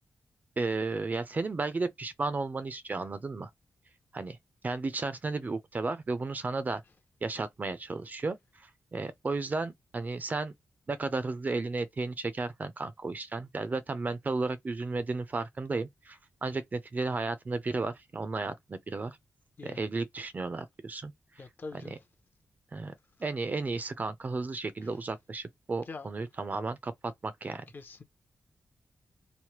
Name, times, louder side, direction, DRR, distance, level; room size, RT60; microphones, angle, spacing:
voice 1, 0.6-3.5 4.1-4.4 4.6-6.8 7.2-8.4 8.6-10.5 10.9-19.2 19.6-21.1 21.8-22.0 22.7-22.9 23.2-27.6, right 3 dB, 35° right, 0.5 m, -33 dB
voice 2, 21.4-22.0 25.9-26.1 27.7-28.0, left 3 dB, 40° left, 0.6 m, -43 dB
3.1 x 2.1 x 2.9 m
wide cardioid pair, 110°, 5 cm